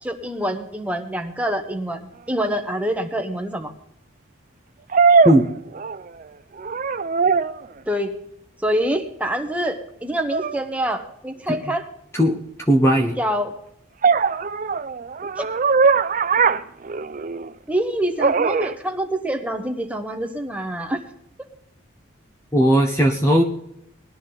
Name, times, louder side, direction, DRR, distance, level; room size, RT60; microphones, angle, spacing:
voice 1, 0.0-3.7 7.9-8.1 8.6-11.9 13.2-13.5 15.4-15.7 17.7-21.0, right 1 dB, 5° right, 4 dB, 1.0 m, -26 dB
sound 1, 2.5-2.6 4.9-6.2 6.6-7.7 10.3-10.6 14.0-17.5 18.2-18.7, right 5 dB, 40° right, 0.4 m, -20 dB
voice 2, 12.7-13.2 22.5-23.4, right 1 dB, 15° left, 4 dB, 0.7 m, -17 dB
19.5 x 11.5 x 3.9 m, 0.75 s
head